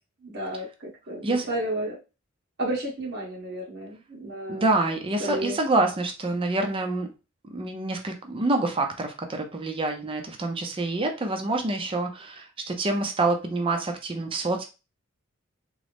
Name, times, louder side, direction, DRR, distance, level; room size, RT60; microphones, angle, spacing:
voice 1, 0.2-2.0 2.6-4.7 5.2-5.6, right 1 dB, 55° right, -4 dB, 1.4 m, -32 dB
voice 2, 4.5-7.1 7.5-14.6, right 2 dB, 25° right, 4 dB, 0.4 m, -27 dB
3.7 x 2.0 x 3.3 m, 0.30 s
head